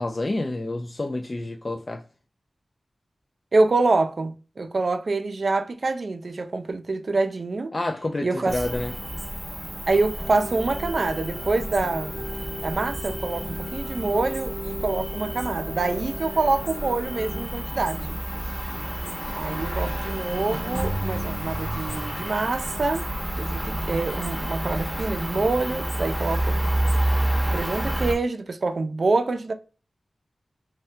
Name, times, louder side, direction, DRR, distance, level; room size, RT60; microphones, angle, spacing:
voice 1, 0.0-2.0 7.7-8.9, left 2 dB, 40° left, 0.3 m, -28 dB
voice 2, 3.5-7.7 8.2-8.6 9.9-12.1 12.6-18.2 19.3-23.1 23.3-26.6 27.4-29.5, right 3 dB, 65° right, 0.4 m, -26 dB
Cricket, 8.5-28.1, right 1 dB, 5° right, 0.8 m, -29 dB
sound 1, 10.2-17.5, equal, 70° left, 0.9 m, -38 dB
2.7 x 2.2 x 3.2 m
wide cardioid pair, 75°, 0 cm